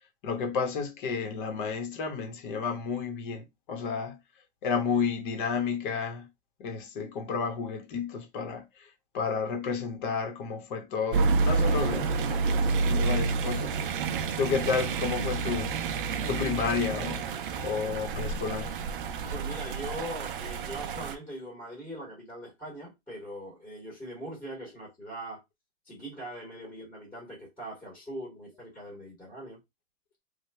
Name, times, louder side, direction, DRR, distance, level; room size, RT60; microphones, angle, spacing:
voice 1, 0.2-4.2 4.6-6.3 6.6-8.9 9.1-13.8 14.4-15.8 16.3-17.2 17.6-18.8, left 5 dB, 40° left, 0.8 m, -31 dB
sound 1, 11.1-21.1, right 4 dB, 45° right, 0.5 m, -29 dB
voice 2, 19.2-25.4 25.8-29.6, right 1 dB, 5° left, 1.0 m, -41 dB
3.2 x 2.2 x 3.3 m
supercardioid pair, 160°, 37 cm